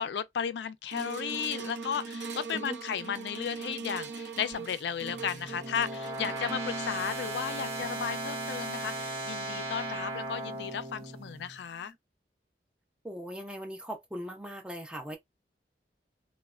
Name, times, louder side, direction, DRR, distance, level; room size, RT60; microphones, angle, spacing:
voice 1, 0.0-11.9, left 7 dB, 75° left, 0.3 m, -34 dB
sound 1, 0.9-11.3 11.9-12.0, right 4 dB, 75° right, 0.5 m, -42 dB
sound 2, 4.5-11.6, right 2 dB, 30° right, 1.4 m, -38 dB
voice 2, 13.0-15.2, right 1 dB, 5° right, 0.4 m, -39 dB
3.1 x 2.1 x 2.3 m
head